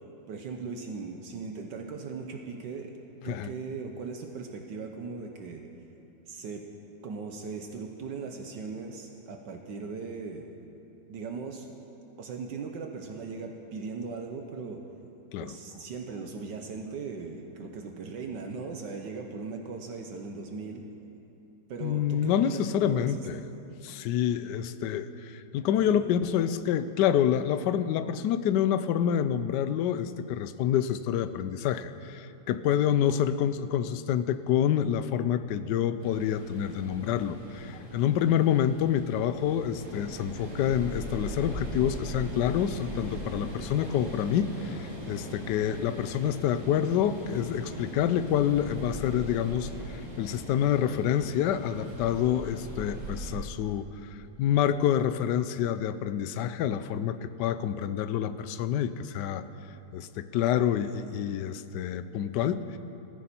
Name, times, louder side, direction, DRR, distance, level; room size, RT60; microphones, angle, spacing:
voice 1, 0.3-3.0 3.2-5.6 6.3-6.6 7.0-10.5 11.1-11.7 12.2-14.8 15.4-20.8 21.7-23.2 25.8-26.0, right 4 dB, 75° right, 3 dB, 1.6 m, -38 dB
voice 2, 21.8-23.4 23.8-53.9 54.4-59.4 59.9-62.7, left 9 dB, 75° left, 12 dB, 1.2 m, -27 dB
sound 1, 36.0-53.3, right 1 dB, 40° right, 3.0 m, -40 dB
19.0 x 15.0 x 4.4 m, 3.0 s
omnidirectional pair, 2.0 m